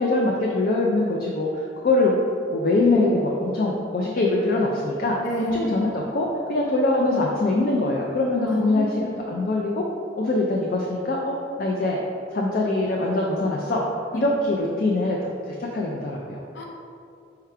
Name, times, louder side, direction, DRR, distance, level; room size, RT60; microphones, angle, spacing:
voice 1, 0.0-1.5 1.8-2.2 2.5-5.2 5.5-9.8 10.2-12.0 12.3-13.8 14.1-15.2 15.5-16.4, left 2 dB, 50° left, -2 dB, 0.4 m, -23 dB
voice 2, 5.2-5.8 8.5-9.2 14.1-14.2 16.5-16.7, left 1 dB, 75° left, -1 dB, 0.7 m, -28 dB
4.6 x 2.2 x 4.8 m, 2.6 s
head